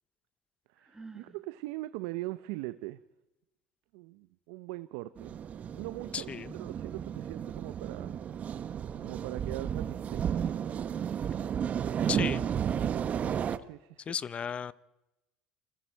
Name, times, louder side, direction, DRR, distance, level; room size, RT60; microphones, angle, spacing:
voice 1, 0.7-3.0 3.9-5.4 5.7-8.6 9.0-10.6 13.6-14.1, right 18 dB, 80° right, 0.7 m, -41 dB
Sigh, 0.8-1.4, right 3 dB, 15° right, 3.6 m, -49 dB
London Underground Boarding and Interior, 5.2-13.6, right 8 dB, 45° right, 1.1 m, -33 dB
voice 2, 6.1-6.5 12.1-12.4 14.1-14.7, left 7 dB, 35° left, 0.7 m, -34 dB
28.0 x 21.5 x 4.6 m
supercardioid pair, 85°, 3 cm